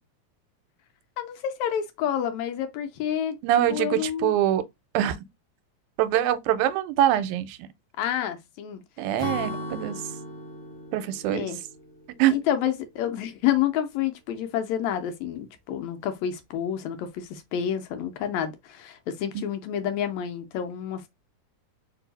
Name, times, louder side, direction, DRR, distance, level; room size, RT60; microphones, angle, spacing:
voice 1, 1.2-3.4 3.7-4.3 8.0-8.8 11.3-11.6 12.3-21.1, left 9 dB, 75° left, 1.8 m, -29 dB
voice 2, 3.4-4.6 4.9-5.2 6.0-7.7 9.0-10.0 10.9-11.5 12.2-12.4 19.4-19.5, right 12 dB, 85° right, 2.0 m, -24 dB
Acoustic guitar / Strum, 9.2-12.8, left 1 dB, 30° left, 1.4 m, -37 dB
4.5 x 2.7 x 3.9 m
omnidirectional pair, 3.5 m